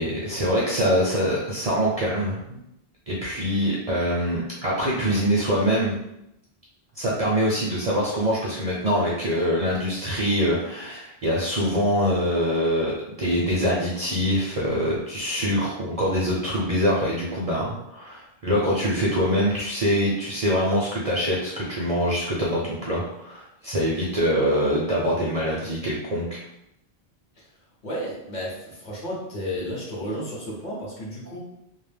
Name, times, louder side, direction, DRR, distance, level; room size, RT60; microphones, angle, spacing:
voice 1, 0.0-2.6 3.1-6.0 7.0-26.4, equal, 50° right, -5 dB, 0.5 m, -24 dB
voice 2, 27.8-31.4, equal, 50° left, -5 dB, 0.9 m, -33 dB
2.3 x 2.1 x 3.2 m, 0.81 s
omnidirectional pair, 1.1 m